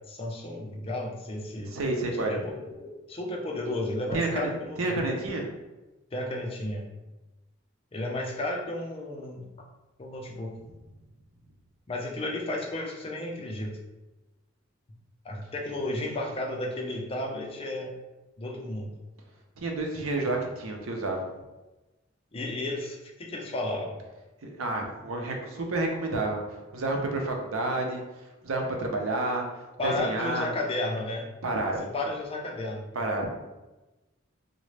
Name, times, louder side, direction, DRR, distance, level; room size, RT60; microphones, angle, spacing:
voice 1, 0.1-1.8 2.2-5.1 6.1-6.9 7.9-9.5 10.0-10.5 11.9-13.8 15.2-17.9 18.4-18.9 22.3-24.0 29.8-31.3 31.9-32.9, left 1 dB, 30° left, 0 dB, 0.5 m, -33 dB
voice 2, 1.7-2.4 4.1-5.5 19.6-21.3 24.4-30.5 31.4-31.9 32.9-33.3, right 2 dB, 90° right, 2 dB, 0.6 m, -30 dB
3.7 x 2.1 x 3.2 m, 1.1 s
head